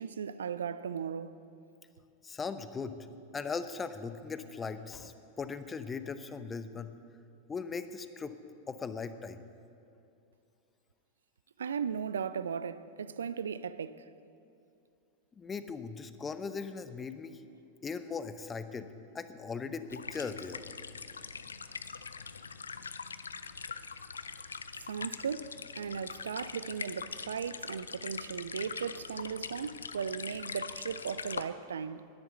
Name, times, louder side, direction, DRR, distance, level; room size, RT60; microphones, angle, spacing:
voice 1, 0.0-1.4 11.6-14.1 21.4-21.5 24.8-32.1, right 7 dB, 65° right, 0.4 m, -37 dB
voice 2, 2.2-3.0 3.3-6.9 7.5-8.4 8.7-9.4 15.4-17.4 17.8-18.9 19.1-20.6, left 5 dB, 20° left, 0.7 m, -39 dB
sound 1, 19.9-31.4, left 5 dB, 75° left, 0.5 m, -42 dB
10.5 x 10.5 x 8.1 m
figure-of-eight pair, 90°, 0 cm